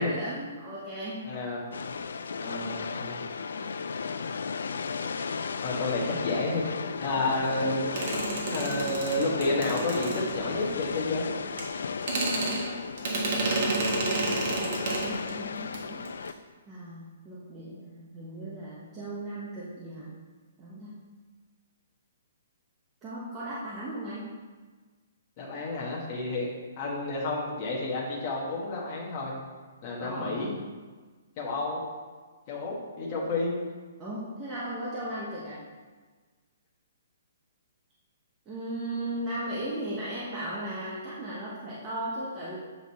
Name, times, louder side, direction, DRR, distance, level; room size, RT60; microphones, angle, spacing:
voice 1, 0.0-1.2 14.5-16.3 16.7-20.1 20.6-20.9 23.0-24.3 30.0-30.4 34.0-35.6 38.5-42.6, right 1 dB, 15° right, -8 dB, 0.8 m, -36 dB
voice 2, 1.2-1.6 2.4-3.3 5.6-6.6 7.0-8.0 8.5-11.3 25.4-26.5 26.8-29.3 29.8-30.5 31.4-31.8 32.5-33.6, left 2 dB, 25° left, -4 dB, 1.4 m, -30 dB
sound 1, 1.7-16.3, left 5 dB, 85° left, 0.3 m, -35 dB
sound 2, 8.0-10.7 11.6-11.7 12.0-15.3 15.6-15.8 16.0-16.3, right 2 dB, 45° right, 1.4 m, -30 dB
8.0 x 3.9 x 4.2 m, 1.4 s
hypercardioid pair, 170°, 0 cm